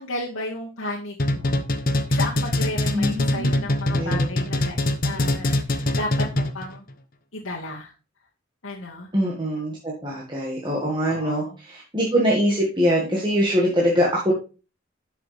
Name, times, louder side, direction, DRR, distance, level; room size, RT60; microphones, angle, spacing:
voice 1, 0.0-1.6 2.1-4.8 5.0-6.8 7.3-7.9 8.6-9.1 10.0-10.2 11.0-11.6, left 2 dB, 70° left, -4 dB, 1.9 m, -33 dB
sound 1, 1.2-6.7, left 1 dB, 40° left, 1.0 m, -23 dB
voice 2, 2.9-3.6 3.9-4.3 9.1-14.3, equal, 20° right, -4 dB, 1.9 m, -23 dB
11.0 x 6.8 x 3.5 m, 0.33 s
head